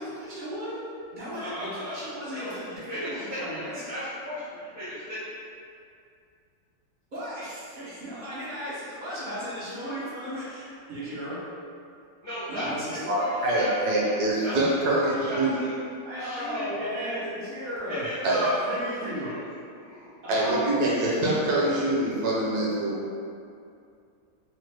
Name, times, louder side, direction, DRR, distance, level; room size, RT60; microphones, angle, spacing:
voice 1, 0.0-3.7 7.1-11.4 12.5-13.0 16.0-18.0 18.3-19.3 20.2-20.8, equal, 85° right, -11 dB, 0.4 m, -35 dB
voice 2, 1.4-2.0 2.3-5.4 12.2-13.7 14.0-14.2 14.4-14.6 14.9-15.8 16.2-17.3 17.9-19.4 19.8-20.1, equal, 55° left, -12 dB, 0.3 m, -35 dB
voice 3, 13.1-15.5 18.2-18.4 20.3-23.2, right 1 dB, 70° right, -5 dB, 1.1 m, -25 dB
3.2 x 2.1 x 3.2 m, 2.5 s
omnidirectional pair, 1.9 m